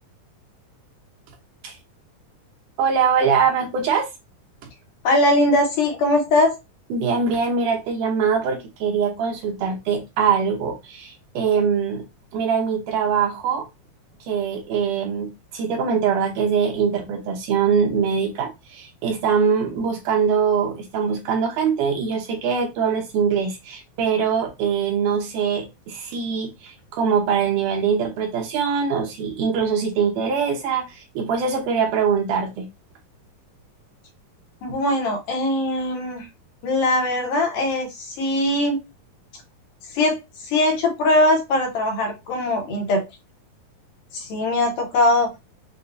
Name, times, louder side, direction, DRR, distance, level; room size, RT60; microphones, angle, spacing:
voice 1, 2.8-4.1 6.9-12.0 12.3-13.7 14.2-32.7, right 6 dB, 75° right, 2.2 m, -23 dB
voice 2, 5.0-6.5 34.6-36.3 36.6-38.8 39.9-40.2 40.4-43.0 44.1-45.3, left 1 dB, 70° left, 2.5 m, -21 dB
6.7 x 2.3 x 2.5 m
omnidirectional pair, 4.0 m